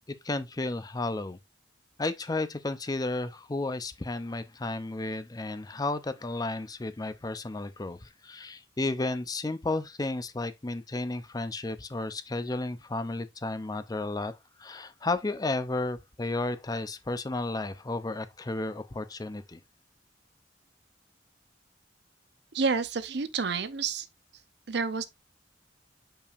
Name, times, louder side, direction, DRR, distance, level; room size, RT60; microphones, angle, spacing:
voice 1, 0.2-1.4 2.0-19.6, left 2 dB, 20° left, 0.5 m, -33 dB
voice 2, 22.5-24.1 24.7-25.1, right 5 dB, 65° right, 0.7 m, -29 dB
6.8 x 5.5 x 2.5 m
head